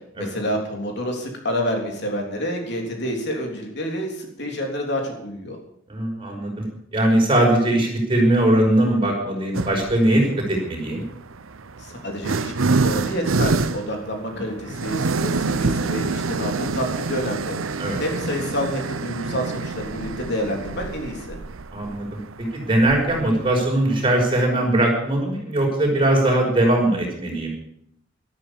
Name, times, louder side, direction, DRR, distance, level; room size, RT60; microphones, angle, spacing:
voice 1, 0.2-5.6 11.8-21.4, equal, 55° left, 1 dB, 3.5 m, -28 dB
voice 2, 5.9-6.6 6.9-11.0 17.8-18.0 21.7-22.2 22.5-27.5, right 1 dB, 25° right, 0 dB, 5.6 m, -20 dB
sound 1, 9.5-10.0 11.0-24.5, right 3 dB, 85° right, 0.8 m, -27 dB
13.0 x 13.0 x 7.2 m, 0.74 s
head